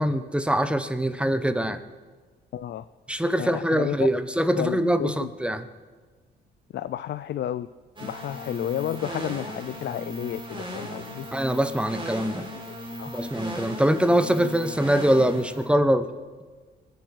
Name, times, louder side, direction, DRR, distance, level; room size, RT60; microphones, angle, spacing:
voice 1, 0.0-1.8 3.1-5.6 11.3-12.5 13.1-16.1, right 1 dB, 5° right, 10 dB, 1.1 m, -23 dB
voice 2, 2.5-2.8 3.4-4.1 4.5-5.3 6.7-7.7 8.0-11.3 12.4-12.7 13.0-13.2 14.4-14.5, left 11 dB, 60° left, 13 dB, 0.5 m, -32 dB
sound 1, 8.0-15.7, equal, 25° right, 5.3 m, -37 dB
23.5 x 8.3 x 6.5 m, 1.5 s
cardioid pair, 90°, 20 cm